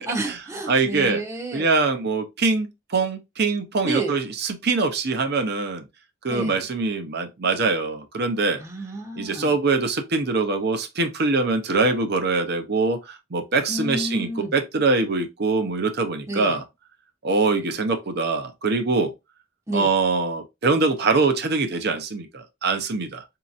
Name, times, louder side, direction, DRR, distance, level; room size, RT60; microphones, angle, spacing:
voice 1, 0.0-1.7 3.8-4.2 6.3-6.6 8.6-9.6 13.7-14.5 16.3-16.6 19.7-19.9, right 1 dB, 15° right, 0.8 m, -30 dB
voice 2, 0.7-1.2 1.5-5.9 6.2-8.6 9.2-16.6 17.2-19.1 19.7-23.2, right 3 dB, 55° right, 0.7 m, -23 dB
5.1 x 2.8 x 2.4 m
head